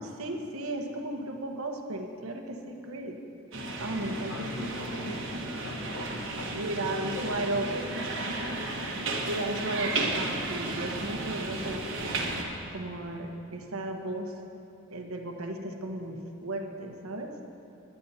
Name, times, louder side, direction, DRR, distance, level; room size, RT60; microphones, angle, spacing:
voice 1, 0.0-3.2 3.8-4.7 6.5-8.9 9.3-12.4 12.7-14.3 14.9-17.3, right 1 dB, 85° right, 3 dB, 1.1 m, -35 dB
sound 1, 3.5-12.4, right 2 dB, 60° right, 1.4 m, -33 dB
voice 2, 4.1-6.1 6.4-7.5, left 1 dB, 80° left, 2 dB, 1.2 m, -41 dB
19.5 x 11.0 x 2.8 m, 2.7 s
head